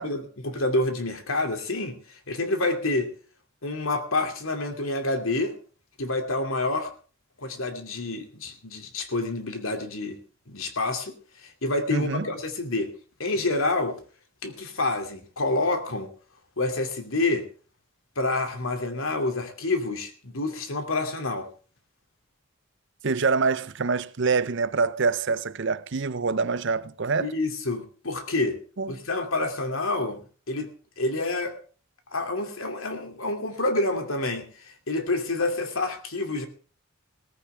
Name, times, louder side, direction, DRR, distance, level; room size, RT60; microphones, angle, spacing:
voice 1, 0.0-3.1 3.6-5.5 6.0-6.9 7.4-10.2 10.5-11.1 11.4-12.9 13.2-14.0 14.4-16.1 16.6-17.4 18.2-21.5 27.2-28.6 28.9-31.6 32.1-34.5 34.9-36.5, left 2 dB, 75° left, 2.6 m, -28 dB
voice 2, 11.9-12.3 23.0-27.3 28.8-29.0, right 4 dB, 60° right, 0.7 m, -25 dB
18.0 x 15.0 x 3.4 m
head